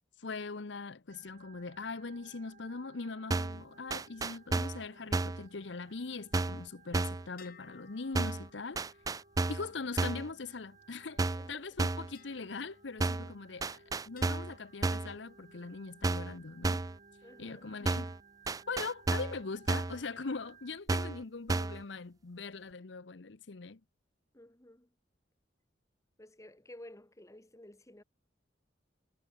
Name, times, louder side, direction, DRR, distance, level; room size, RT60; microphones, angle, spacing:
voice 1, 0.2-8.8 9.5-16.8 17.4-18.1 18.7-23.8, left 4 dB, 70° left, 0.8 m, -41 dB
Organ, 1.1-20.8, right 4 dB, 45° right, 2.9 m, -61 dB
sound 1, 3.3-3.6 3.9-4.8 5.1-5.4 6.3-6.7 6.9-7.3 8.2-8.5 8.8-9.7 10.0-10.3 11.2-11.5 11.8-12.1 13.0-13.3 13.6-14.5 14.8-15.1 16.0-16.4 16.6-17.0 17.9-18.2 18.5-19.4 19.7-20.0 20.9-21.2 21.5-21.8, right 3 dB, 20° right, 0.4 m, -32 dB
sound 2, 7.4-11.1 12.1-13.7 14.2-15.8, left 8 dB, 55° left, 4.3 m, -63 dB
voice 2, 11.3-11.7 17.2-17.7 24.3-24.9 26.2-28.0, left 1 dB, 15° left, 1.7 m, -53 dB
head